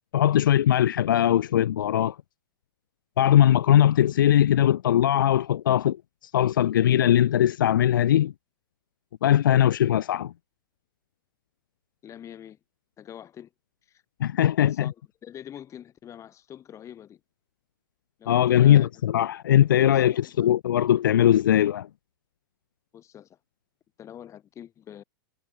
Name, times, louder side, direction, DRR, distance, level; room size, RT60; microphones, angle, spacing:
voice 1, 0.1-2.2 3.2-6.0 6.3-8.3 9.2-10.3 14.2-14.9 18.3-21.9, left 11 dB, 70° left, 0.9 m, -20 dB
voice 2, 12.0-12.6 13.0-13.5 13.9-14.0 14.6-14.9 15.2-17.2 18.2-18.9 19.6-20.5 22.9-23.4 24.0-25.0, left 10 dB, 25° left, 6.7 m, -44 dB
hypercardioid pair, 110°, 11 cm